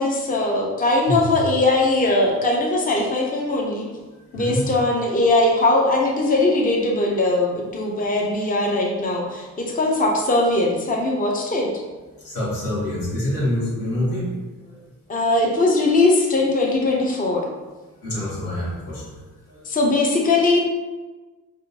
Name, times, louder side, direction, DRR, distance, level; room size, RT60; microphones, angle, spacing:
voice 1, 0.0-3.9 4.3-11.7 15.1-17.5 19.6-20.6, left 2 dB, 25° left, -1 dB, 0.6 m, -20 dB
voice 2, 4.3-4.7 12.2-14.3 14.6-14.8 18.0-19.7, left 1 dB, 85° left, -7 dB, 1.4 m, -26 dB
3.5 x 2.5 x 2.7 m, 1.3 s
cardioid pair, 75°, 33 cm